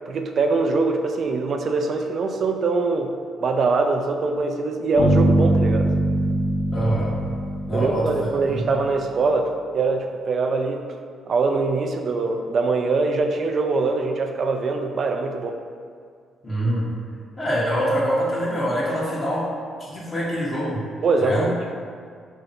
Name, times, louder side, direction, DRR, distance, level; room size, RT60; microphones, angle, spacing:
voice 1, 0.1-3.1 3.4-5.9 7.7-10.8 11.3-15.5 21.0-21.7, right 3 dB, 50° right, 5 dB, 0.3 m, -23 dB
sound 1, 5.0-8.9, right 1 dB, 65° left, 1.1 m, -22 dB
voice 2, 6.7-7.2 7.7-8.7 16.4-16.9 17.4-19.5 19.8-20.8 21.2-21.5, equal, 35° left, -7 dB, 1.0 m, -24 dB
3.1 x 2.7 x 3.9 m, 2.1 s
cardioid pair, 90°, 0 cm